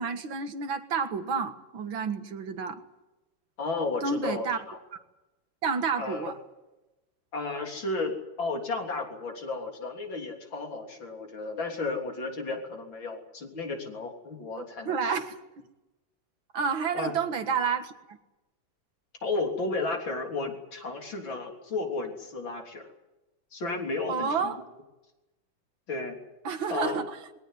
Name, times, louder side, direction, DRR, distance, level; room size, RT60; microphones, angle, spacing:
voice 1, 0.0-2.8 4.0-4.6 5.6-6.4 14.6-15.4 16.5-18.2 24.1-24.6 26.4-27.2, right 5 dB, 90° right, 8 dB, 2.5 m, -30 dB
voice 2, 3.6-4.8 6.0-6.3 7.3-8.1 8.4-15.2 16.9-17.1 19.2-22.9 23.5-24.6 25.9-26.2 26.7-27.0, left 3 dB, 75° left, 2 dB, 4.2 m, -33 dB
21.5 x 18.0 x 9.5 m, 1.0 s
omnidirectional pair, 2.1 m